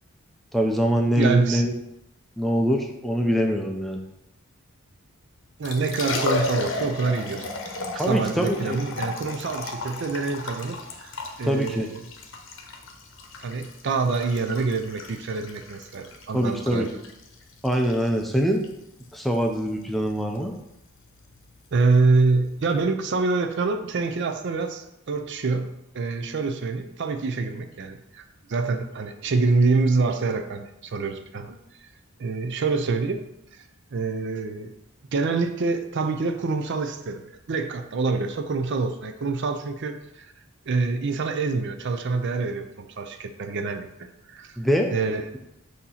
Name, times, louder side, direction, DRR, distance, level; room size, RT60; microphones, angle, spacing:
voice 1, 0.5-1.7 2.4-4.0 7.9-8.8 11.5-11.9 16.3-16.9 17.6-18.6 19.1-20.6 44.6-44.9, equal, ahead, 2 dB, 0.5 m, -23 dB
voice 2, 1.2-1.6 5.6-7.5 7.9-11.1 11.4-12.0 13.4-16.9 21.7-28.2 28.5-31.6 32.2-33.2 33.5-33.6 33.9-34.7 35.1-40.3 40.7-44.6 44.9-45.3, right 3 dB, 55° right, 7 dB, 0.5 m, -26 dB
Liquid, 5.4-22.8, left 3 dB, 60° left, 0.8 m, -35 dB
6.4 x 2.8 x 5.6 m, 0.85 s
head